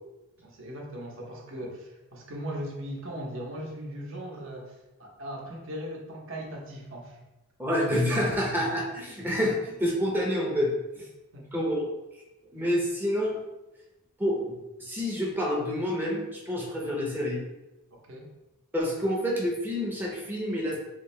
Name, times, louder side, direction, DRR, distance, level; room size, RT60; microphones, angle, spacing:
voice 1, 0.4-7.2 11.0-11.1 11.3-11.5 17.9-18.3, equal, 60° right, -1 dB, 0.7 m, -39 dB
voice 2, 7.6-10.7 11.5-11.9 12.5-13.4 14.2-14.5 14.8-17.4 18.7-20.8, equal, 10° right, -3 dB, 0.6 m, -28 dB
3.8 x 2.6 x 3.1 m, 0.99 s
head